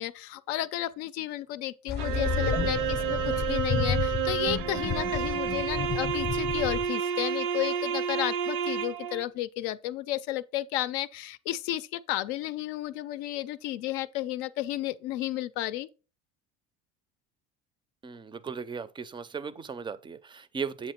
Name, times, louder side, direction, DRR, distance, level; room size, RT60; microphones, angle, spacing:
voice 1, 0.0-15.9, left 14 dB, 75° left, 0.5 m, -33 dB
sound 1, 1.9-6.9, left 7 dB, 35° left, 0.7 m, -31 dB
sound 2, 2.0-9.2, right 8 dB, 70° right, 0.6 m, -30 dB
voice 2, 18.0-20.9, right 5 dB, 15° right, 0.4 m, -37 dB
7.8 x 2.9 x 4.3 m
supercardioid pair, 105°, 29 cm